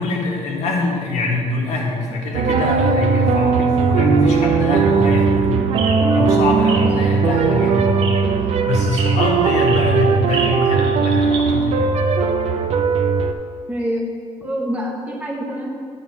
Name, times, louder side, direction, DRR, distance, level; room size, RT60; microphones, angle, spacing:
voice 1, 0.0-5.7 6.1-8.0 8.7-11.9, left 2 dB, 90° left, -1 dB, 1.4 m, -23 dB
sound 1, 2.3-13.3, right 5 dB, 70° right, 0.6 m, -18 dB
sound 2, 5.4-11.5, right 4 dB, 50° right, 1.0 m, -32 dB
voice 2, 6.8-7.4 13.7-14.0 14.4-15.7, equal, 10° right, -3 dB, 1.2 m, -26 dB
9.5 x 3.7 x 5.9 m, 2.1 s
cardioid pair, 170°, 11 cm